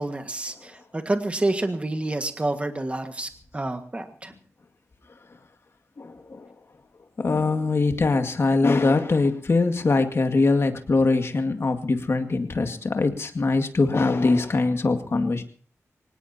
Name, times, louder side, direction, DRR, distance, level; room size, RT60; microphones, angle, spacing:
voice 1, 0.0-4.3, right 2 dB, 20° right, 6 dB, 1.7 m, -28 dB
voice 2, 6.0-6.5 7.2-15.4, left 3 dB, 50° left, 6 dB, 2.1 m, -22 dB
24.0 x 19.5 x 2.9 m, 0.42 s
wide cardioid pair, 110°, 5 cm